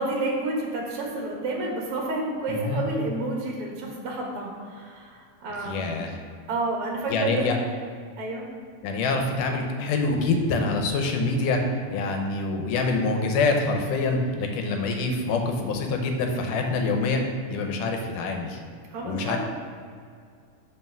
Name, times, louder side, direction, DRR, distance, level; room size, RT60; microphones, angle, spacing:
voice 1, 0.0-6.0 6.5-7.5 8.2-8.5 18.9-19.4, right 2 dB, 60° right, -1 dB, 1.7 m, -30 dB
voice 2, 2.5-2.9 5.6-6.1 7.1-7.6 8.8-11.6 11.9-17.2 17.5-18.6 19.0-19.4, left 3 dB, 90° left, 3 dB, 2.3 m, -25 dB
5.6 x 5.0 x 6.0 m, 2.2 s
omnidirectional pair, 3.6 m